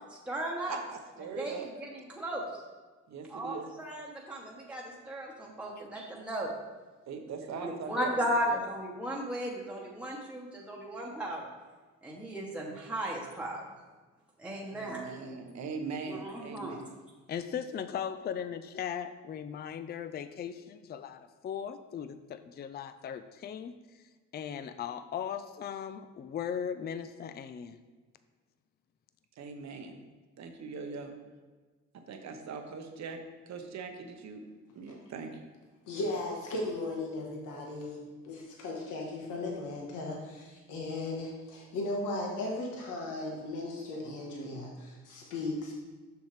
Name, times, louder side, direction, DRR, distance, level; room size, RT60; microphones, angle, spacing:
voice 1, 0.1-0.8 1.4-2.6 3.3-6.5 7.5-11.5 12.0-13.6 14.4-15.0 16.1-16.8, equal, 5° right, -4 dB, 1.1 m, -36 dB
voice 2, 0.7-1.7 3.1-3.7 7.1-8.6 14.7-16.9 29.4-30.0 30.4-31.1 31.9-33.2 33.5-34.4 34.7-35.4, right 5 dB, 65° right, 5 dB, 1.0 m, -41 dB
voice 3, 17.3-23.7 24.3-27.8, left 8 dB, 35° left, 11 dB, 0.4 m, -38 dB
voice 4, 35.9-45.7, left 2 dB, 90° left, -1 dB, 1.4 m, -36 dB
6.8 x 6.3 x 3.3 m, 1.3 s
cardioid pair, 90°, 30 cm